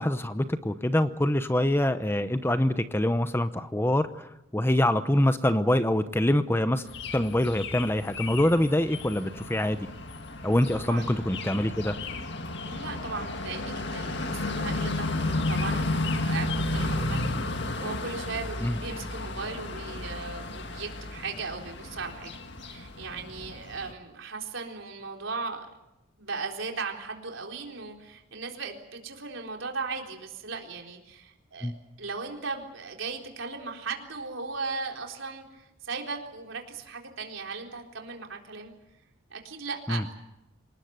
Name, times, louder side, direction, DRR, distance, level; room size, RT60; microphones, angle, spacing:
voice 1, 0.0-6.8 7.1-9.9 10.4-11.9 18.6-18.8 31.6-31.8 39.9-40.0, left 1 dB, 10° left, 11 dB, 0.8 m, -25 dB
sound 1, 6.9-23.9, left 2 dB, 60° left, 1.9 m, -33 dB
voice 2, 10.7-11.2 12.7-22.3 22.6-25.7 26.2-31.7 32.0-38.7 39.3-40.2, right 4 dB, 75° right, 2 dB, 4.0 m, -37 dB
26.5 x 19.5 x 8.1 m, 0.93 s
head